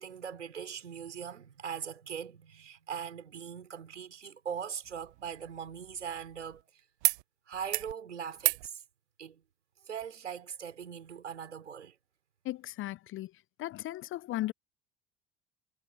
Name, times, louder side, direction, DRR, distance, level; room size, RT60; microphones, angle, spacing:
voice 1, 0.0-6.7 7.5-8.8 9.2-9.4 9.9-12.0, right 7 dB, 85° right, 5.5 m, -41 dB
sound 1, 4.8-6.6 7.0-7.2 7.5-7.9 8.4-8.7 10.0-10.1, right 21 dB, 70° right, 0.7 m, -33 dB
voice 2, 12.5-13.3 13.6-14.5, left 15 dB, 35° left, 0.5 m, -36 dB
hypercardioid pair, 70°, 35 cm